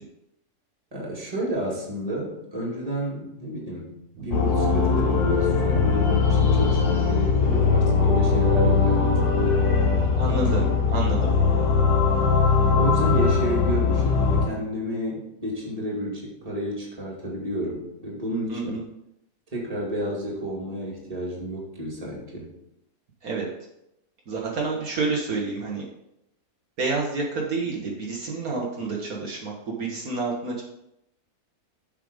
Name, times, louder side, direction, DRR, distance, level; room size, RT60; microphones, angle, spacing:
voice 1, 0.9-4.0 4.2-9.6 10.2-10.7 11.9-12.4 12.7-18.8 19.5-22.5, equal, 25° right, -4 dB, 2.3 m, -31 dB
sound 1, 4.3-14.5, left 5 dB, 85° left, 1.6 m, -20 dB
voice 2, 10.2-11.3 18.5-18.8 23.2-23.5 24.3-25.8 26.8-30.6, right 3 dB, 70° right, -2 dB, 1.8 m, -29 dB
7.2 x 5.7 x 5.1 m, 0.81 s
omnidirectional pair, 1.6 m